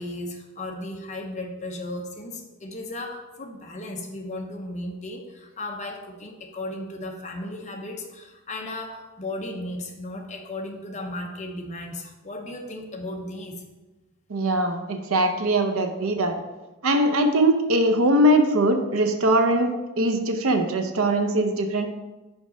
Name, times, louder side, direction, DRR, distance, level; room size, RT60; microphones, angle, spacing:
voice 1, 0.0-13.6, left 1 dB, 30° left, 2 dB, 0.8 m, -35 dB
voice 2, 14.3-16.4 16.8-21.9, right 1 dB, 65° right, 6 dB, 0.7 m, -21 dB
5.2 x 4.9 x 5.4 m, 1.1 s
head